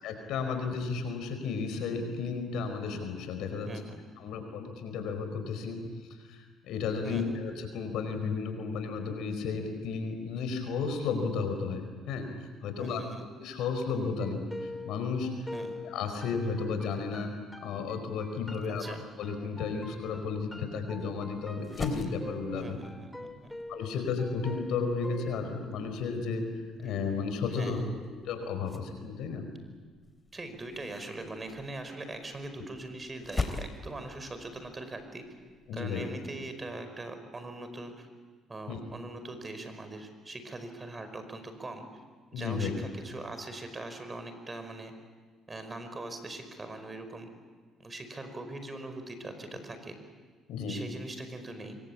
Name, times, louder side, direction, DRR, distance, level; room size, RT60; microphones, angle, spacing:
voice 1, 0.0-3.7 4.2-5.8 6.1-12.3 12.6-13.0 13.4-15.5 15.8-17.3 17.6-18.8 19.2-22.8 23.7-26.4 26.8-27.8 28.2-29.5 35.7-36.0 38.7-38.8 42.3-42.7 50.5-50.8, left 5 dB, 75° left, 7 dB, 4.9 m, -33 dB
voice 2, 3.7-4.0 7.0-7.2 12.8-13.3 15.5-15.8 18.8-19.0 22.5-23.5 27.5-27.8 30.3-35.3 35.7-38.1 38.5-41.9 42.3-44.9 45.5-47.3 47.8-50.0 50.7-51.8, right 2 dB, 25° right, 8 dB, 5.1 m, -41 dB
sound 1, 14.2-25.8, left 2 dB, 10° left, 3.5 m, -45 dB
sound 2, 21.0-35.7, left 3 dB, 25° left, 3.3 m, -44 dB
25.0 x 23.0 x 8.7 m, 1.4 s
supercardioid pair, 70°, 0 cm